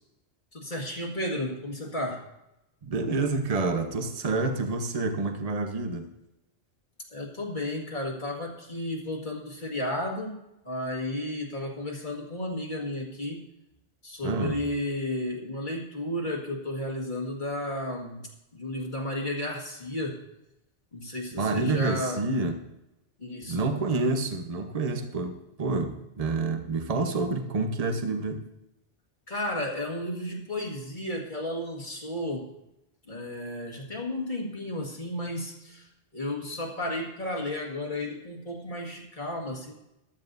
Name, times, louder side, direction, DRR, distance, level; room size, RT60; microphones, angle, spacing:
voice 1, 0.5-2.2 7.1-10.4 10.6-13.4 14.0-20.2 20.9-22.2 23.2-23.6 29.3-32.5 33.1-39.7, left 1 dB, 45° left, -1 dB, 2.1 m, -33 dB
voice 2, 2.8-6.1 14.2-14.6 21.3-22.5 23.5-28.5, right 3 dB, 35° right, 5 dB, 1.1 m, -28 dB
15.0 x 12.5 x 2.7 m, 0.89 s
omnidirectional pair, 1.2 m